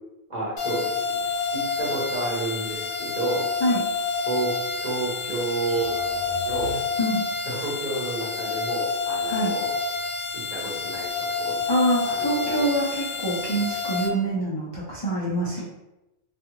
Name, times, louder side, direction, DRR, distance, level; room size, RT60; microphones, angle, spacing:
voice 1, 0.3-1.2 1.5-3.5 4.3-6.0 6.4-6.8 7.5-9.7 10.3-11.7 12.0-13.0 15.5-15.6, right 2 dB, 40° right, -6 dB, 0.8 m, -30 dB
sound 1, 0.6-14.1, left 4 dB, 60° left, 0.8 m, -29 dB
sound 2, 5.7-7.4, left 2 dB, 80° right, 1.1 m, -40 dB
voice 2, 11.7-15.6, right 1 dB, 40° left, -8 dB, 0.3 m, -25 dB
2.4 x 2.4 x 2.9 m, 0.95 s
omnidirectional pair, 1.2 m